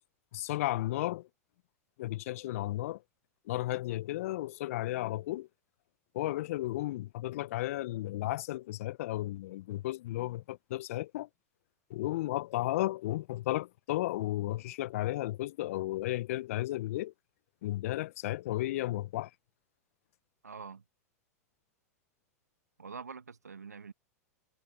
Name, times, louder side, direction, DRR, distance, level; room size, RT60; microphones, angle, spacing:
voice 1, 0.3-1.3 2.0-3.0 3.4-5.5 6.1-11.3 11.9-17.1 17.6-19.3, left 16 dB, 60° left, 1.0 m, -34 dB
voice 2, 20.4-20.8 22.8-23.9, right 5 dB, 85° right, 1.7 m, -45 dB
hypercardioid pair, 95°, 8 cm